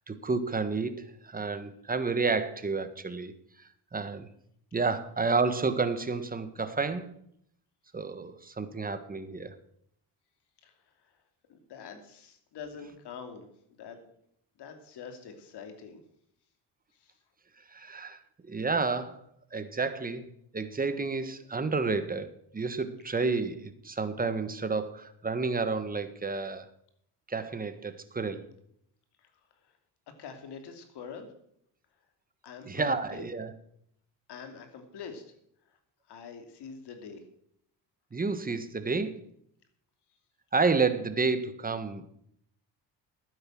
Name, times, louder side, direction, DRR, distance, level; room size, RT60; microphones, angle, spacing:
voice 1, 0.0-3.3 3.9-4.3 4.7-7.1 7.9-9.5 17.7-19.2 19.5-20.3 20.5-26.7 27.3-28.5 32.6-33.5 38.1-39.2 40.5-42.0, right 4 dB, 20° right, 11 dB, 1.5 m, -30 dB
voice 2, 10.6-11.2 11.5-14.1 14.6-16.0 16.9-17.1 29.2-29.3 29.6-29.7 30.2-31.3 32.4-33.3 34.3-35.2 35.7-35.8 36.1-37.2, left 6 dB, 70° left, 6 dB, 2.9 m, -45 dB
12.5 x 9.7 x 6.2 m, 0.70 s
cardioid pair, 100°, 42 cm